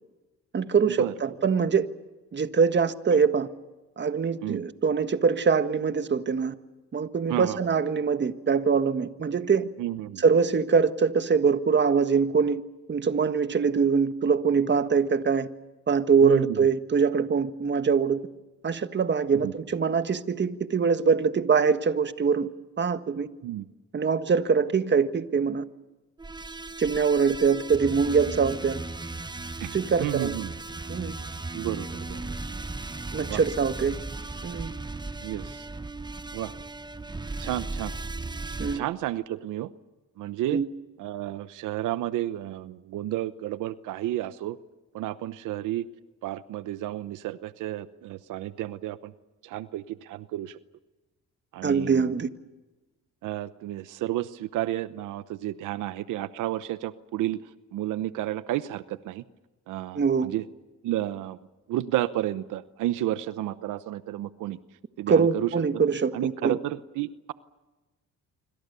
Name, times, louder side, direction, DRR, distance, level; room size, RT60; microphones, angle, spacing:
voice 1, 0.5-1.9 2.3-3.5 4.0-6.5 6.9-9.7 10.2-12.6 12.9-15.5 15.9-18.2 18.6-22.5 22.8-23.3 23.9-25.6 26.8-28.8 29.7-30.3 30.9-31.1 33.1-33.9 34.4-34.7 38.6-38.9 40.5-40.7 51.6-52.3 59.9-60.3 65.1-66.6, right 5 dB, 35° right, 10 dB, 1.6 m, -23 dB
voice 2, 9.8-10.2 16.2-16.6 19.4-19.5 23.4-23.6 29.6-30.5 31.5-32.3 33.3-33.4 35.2-35.7 36.3-36.5 37.4-37.9 38.7-39.7 40.2-40.6 41.0-44.6 44.9-45.8 46.2-49.1 49.4-50.6 51.5-52.1 53.2-57.4 57.7-59.2 59.7-60.4 60.8-61.4 61.7-64.6 65.0-65.5 66.1-67.3, right 14 dB, 90° right, 14 dB, 1.0 m, -31 dB
sound 1, 26.2-38.8, right 3 dB, 15° right, 1.1 m, -36 dB
26.5 x 25.5 x 6.9 m, 1.1 s
cardioid pair, 90°, 30 cm